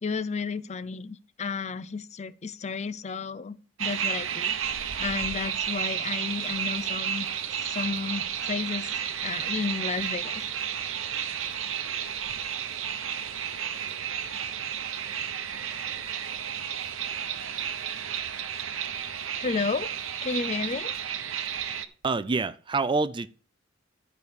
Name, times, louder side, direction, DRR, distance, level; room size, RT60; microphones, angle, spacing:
voice 1, 0.0-4.5 5.0-10.4 19.4-19.9 20.2-20.9, left 4 dB, 35° left, 0.5 m, -32 dB
sound 1, 3.8-21.9, right 9 dB, 85° right, 0.9 m, -32 dB
voice 2, 22.0-23.3, right 4 dB, 25° right, 0.4 m, -26 dB
11.0 x 4.8 x 6.9 m
head